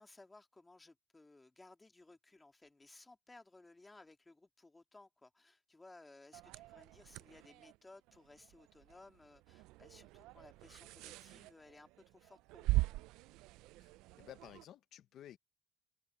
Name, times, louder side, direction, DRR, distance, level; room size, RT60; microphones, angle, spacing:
voice 1, 0.0-12.9, left 2 dB, 10° left, 1.9 m, -60 dB
sound 1, 6.3-14.6, right 20 dB, 75° right, 0.3 m, -42 dB
voice 2, 14.2-15.4, left 11 dB, 45° left, 0.8 m, -54 dB
cardioid pair, 165°, 0 cm